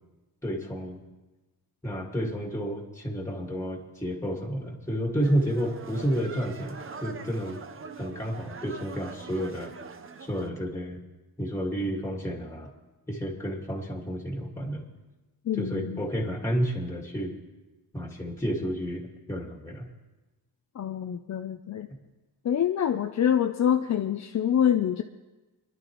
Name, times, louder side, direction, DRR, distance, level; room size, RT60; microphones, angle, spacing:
voice 1, 0.4-1.0 1.8-7.6 8.0-9.7 10.2-11.0 11.4-12.7 13.1-14.8 15.6-17.4 17.9-19.9, equal, 5° left, 1 dB, 1.9 m, -31 dB
sound 1, 5.2-10.5, right 4 dB, 35° right, 0.8 m, -43 dB
voice 2, 15.5-16.0 20.8-21.9 22.4-25.0, left 9 dB, 45° left, 6 dB, 0.5 m, -26 dB
26.0 x 11.0 x 3.0 m, 1.1 s
wide cardioid pair, 120°, 38 cm